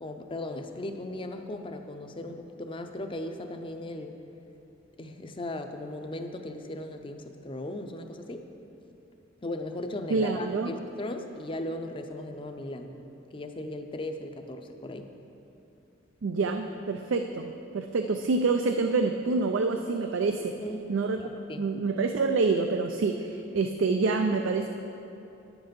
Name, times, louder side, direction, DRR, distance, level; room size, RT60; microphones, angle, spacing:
voice 1, 0.0-4.2 5.0-8.5 9.4-12.9 13.3-15.1 20.6-20.9 21.2-21.7, left 1 dB, 25° left, 6 dB, 0.6 m, -37 dB
voice 2, 10.1-10.7 16.2-20.5 20.9-21.2 21.6-24.7, right 4 dB, 90° right, 5 dB, 0.4 m, -27 dB
9.7 x 8.0 x 5.2 m, 2.9 s
head